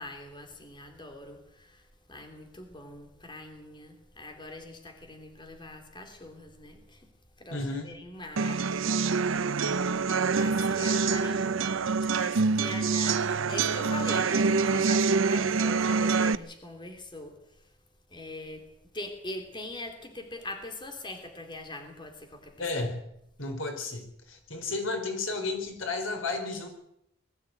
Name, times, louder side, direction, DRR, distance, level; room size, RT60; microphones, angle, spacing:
voice 1, 0.0-7.1 7.4-9.5 10.3-11.7 12.1-17.3 18.1-18.6 18.9-22.5, left 1 dB, 25° left, 5 dB, 3.2 m, -42 dB
voice 2, 7.5-7.9 22.6-23.1 23.4-26.7, left 3 dB, 85° left, 5 dB, 4.4 m, -33 dB
sound 1, 8.4-16.3, right 4 dB, 80° right, 0.7 m, -26 dB
21.0 x 14.5 x 9.0 m, 0.77 s
head